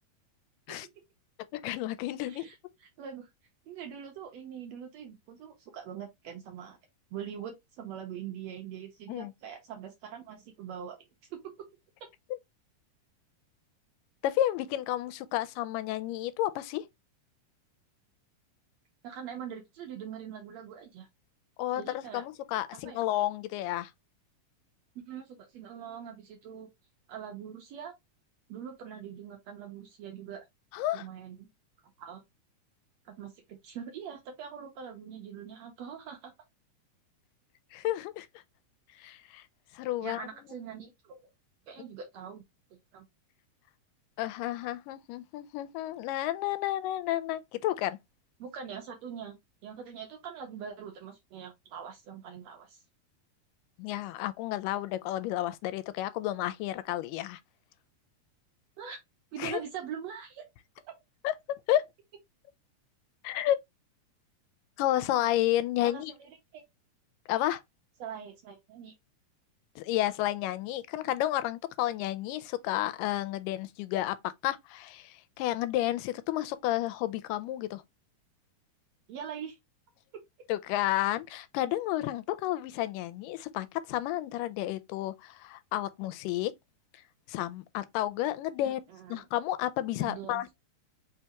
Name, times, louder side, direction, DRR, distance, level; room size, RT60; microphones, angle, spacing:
voice 1, 1.5-2.5 9.1-9.3 12.3-12.4 14.2-16.8 21.6-23.9 30.7-31.1 37.7-38.3 39.0-39.4 39.7-40.2 44.2-48.0 53.8-57.4 59.4-59.6 61.2-61.3 61.7-61.8 63.2-63.6 64.8-66.1 67.3-67.6 69.8-74.2 74.4-77.8 80.5-86.5 87.3-88.8 89.1-90.5, left 14 dB, 85° left, 2.2 m, -31 dB
voice 2, 2.3-3.3 3.7-6.8 7.1-11.0 11.3-11.4 19.0-21.1 21.7-22.2 22.8-23.0 25.1-26.7 27.1-27.9 28.5-30.5 30.9-31.5 32.0-32.2 33.0-36.3 40.0-41.3 41.7-42.4 42.9-43.0 48.4-49.3 49.6-52.8 58.8-59.0 59.3-60.4 60.9-61.0 65.8-66.6 68.0-68.9 79.1-79.6 88.6-89.2 90.0-90.4, right 8 dB, 70° right, 1.7 m, -43 dB
4.7 x 3.4 x 2.8 m
omnidirectional pair, 3.8 m